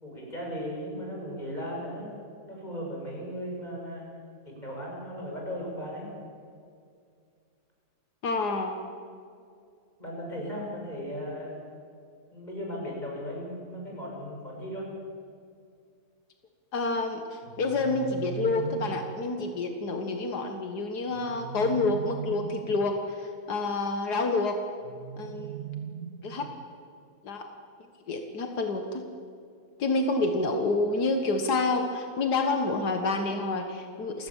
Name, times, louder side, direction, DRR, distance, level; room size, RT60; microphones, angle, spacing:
voice 1, 0.0-2.1 2.5-4.0 4.5-6.1 10.0-11.5 12.3-14.9, equal, 25° left, -3 dB, 6.9 m, -36 dB
voice 2, 8.2-8.7 16.7-24.6 25.2-25.6 26.2-26.5 27.2-27.4 28.1-29.0 29.8-34.3, left 3 dB, 90° left, 5 dB, 2.1 m, -28 dB
sound 1, 17.4-19.3 21.1-23.0 24.8-26.8, right 8 dB, 60° right, 1.4 m, -39 dB
29.0 x 16.5 x 7.4 m, 2.3 s
omnidirectional pair, 1.7 m